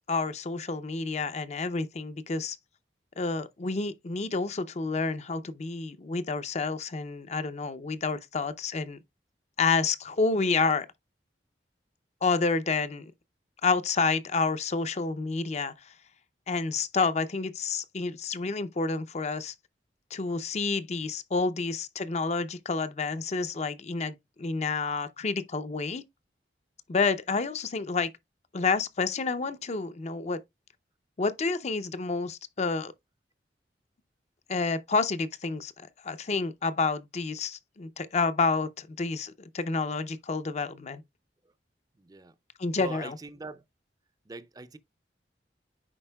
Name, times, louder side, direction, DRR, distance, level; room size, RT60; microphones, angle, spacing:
voice 1, 0.1-2.6 3.2-9.0 9.6-10.9 12.2-13.1 13.6-15.9 16.5-19.5 20.1-26.0 26.9-28.1 28.5-30.4 31.2-32.9 34.5-41.0 42.6-43.2, left 4 dB, 40° left, 0.5 m, -29 dB
voice 2, 42.0-42.3 42.8-43.6 44.3-44.8, right 3 dB, 20° right, 0.5 m, -42 dB
9.8 x 4.3 x 2.3 m
head